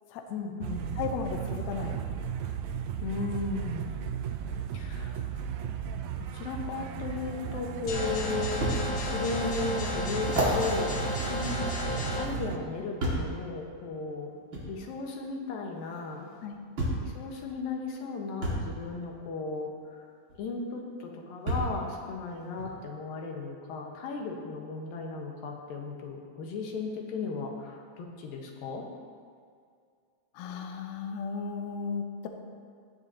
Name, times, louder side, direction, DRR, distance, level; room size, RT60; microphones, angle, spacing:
voice 1, 0.3-1.0 3.0-3.9 4.7-5.2 6.2-8.8 9.0-10.9 11.3-14.3 14.7-16.3 17.0-20.0 20.4-28.8, left 4 dB, 90° left, 1 dB, 2.9 m, -36 dB
sound 1, 0.6-12.6, right 8 dB, 85° right, 1.6 m, -35 dB
voice 2, 1.0-2.0 16.4-16.6 30.4-32.3, left 5 dB, 75° left, 4 dB, 1.8 m, -35 dB
sound 2, 7.9-12.3, left 2 dB, 55° left, 1.4 m, -33 dB
sound 3, 8.6-8.8 9.4-9.5 10.2-12.1 13.0-13.4 14.5-14.7 15.9-16.0 16.8-17.1 18.4-18.7 20.3-20.4 21.5-21.8 22.6-22.7, right 1 dB, 40° right, 2.2 m, -31 dB
15.5 x 10.5 x 2.8 m, 2.2 s
omnidirectional pair, 3.9 m